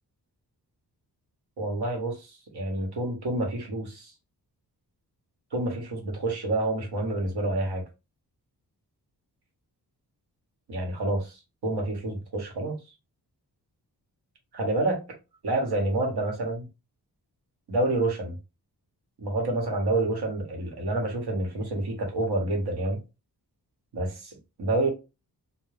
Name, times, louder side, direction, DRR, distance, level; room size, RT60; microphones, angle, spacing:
voice 1, 1.6-4.1 5.5-7.8 10.7-12.8 14.5-15.0 15.4-16.7 17.7-18.3 19.2-23.0 23.9-24.9, right 2 dB, 75° right, 1.1 m, -28 dB
2.4 x 2.1 x 3.2 m
cardioid pair, 80°, 39 cm